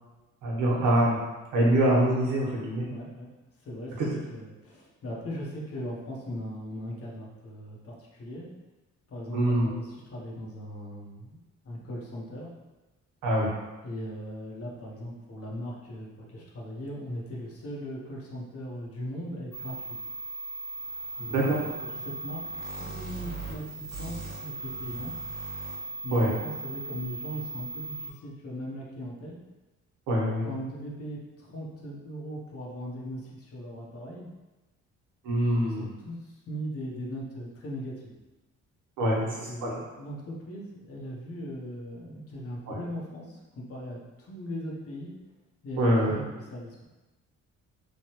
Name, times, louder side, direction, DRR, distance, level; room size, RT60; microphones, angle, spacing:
voice 1, 0.4-1.2 1.5-2.8 4.0-4.1 9.3-9.7 13.2-13.5 21.3-21.6 26.1-26.3 30.1-30.4 35.2-35.9 39.0-39.2 39.6-39.8 42.7-42.8 45.8-46.1, right 1 dB, 85° right, -4 dB, 1.0 m, -24 dB
voice 2, 2.8-3.3 3.6-8.5 9.1-11.4 11.6-12.5 13.8-20.0 21.2-21.7 22.0-22.4 22.7-25.1 26.0-29.4 30.4-34.3 35.5-38.1 39.2-45.1 45.6-46.8, equal, 50° left, -3 dB, 0.8 m, -39 dB
sound 1, 19.5-28.1, right 2 dB, ahead, 1.0 m, -38 dB
3.1 x 2.2 x 2.9 m, 1.1 s
cardioid pair, 90°, 30 cm